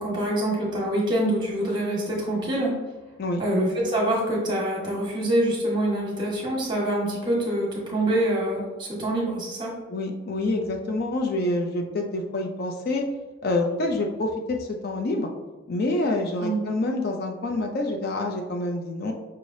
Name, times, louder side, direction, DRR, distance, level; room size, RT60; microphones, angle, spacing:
voice 1, 0.0-2.7 3.4-9.7 16.4-16.6, right 1 dB, 20° right, -3 dB, 1.2 m, -25 dB
voice 2, 9.9-13.1 13.4-15.3 15.7-19.1, left 2 dB, 45° left, 2 dB, 0.4 m, -27 dB
5.6 x 3.2 x 2.6 m, 1.2 s
head